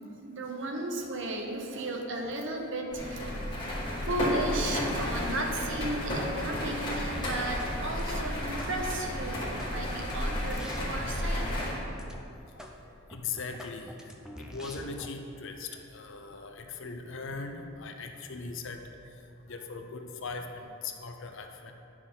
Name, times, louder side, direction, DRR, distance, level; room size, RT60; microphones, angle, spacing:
voice 1, 0.2-3.4 4.1-9.4 9.7-11.7, right 2 dB, 55° right, 2 dB, 0.9 m, -35 dB
sound 1, 2.9-11.8, left 1 dB, 20° left, 1.9 m, -32 dB
sound 2, 7.1-7.7 8.0-8.7 9.1-11.7 12.0-12.2 12.6-12.7 13.1-15.1, equal, 5° right, 0.4 m, -44 dB
voice 2, 13.1-13.9 14.5-18.8 19.5-21.7, left 4 dB, 60° left, 5 dB, 0.6 m, -39 dB
9.7 x 6.1 x 3.8 m, 2.7 s
head